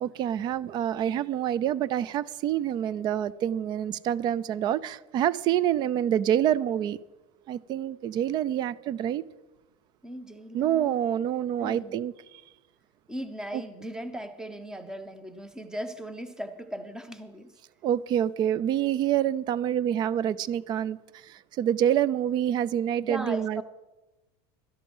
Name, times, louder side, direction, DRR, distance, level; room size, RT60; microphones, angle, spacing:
voice 1, 0.0-7.0 7.5-9.2 10.5-12.1 13.5-13.6 17.8-21.0 21.2-23.6, right 10 dB, 35° right, 21 dB, 0.4 m, -27 dB
voice 2, 10.0-10.9 11.6-11.9 13.1-17.5 23.0-23.6, equal, 5° right, 10 dB, 0.9 m, -38 dB
12.5 x 11.0 x 5.4 m, 1.1 s
supercardioid pair, 150°, 13 cm